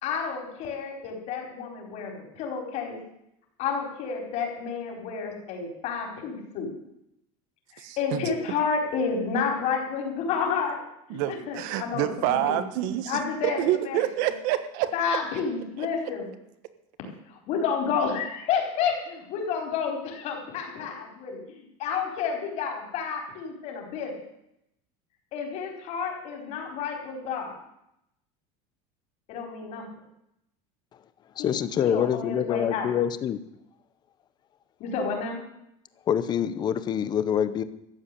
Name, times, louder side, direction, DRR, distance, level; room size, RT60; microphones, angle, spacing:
voice 1, 0.0-3.0 3.6-6.7 7.7-10.8 11.1-12.6 13.1-14.3 14.9-16.3 17.3-24.1 25.3-27.5 29.3-29.8 31.4-31.5 31.8-32.9 34.8-35.4, left 6 dB, 45° left, 2 dB, 4.5 m, -30 dB
voice 2, 7.8-8.3 11.1-15.2, right 13 dB, 60° right, 11 dB, 1.5 m, -28 dB
voice 3, 31.4-33.4 36.1-37.6, left 9 dB, 25° left, 14 dB, 0.8 m, -26 dB
14.0 x 8.0 x 9.9 m, 0.80 s
cardioid pair, 165°, 16 cm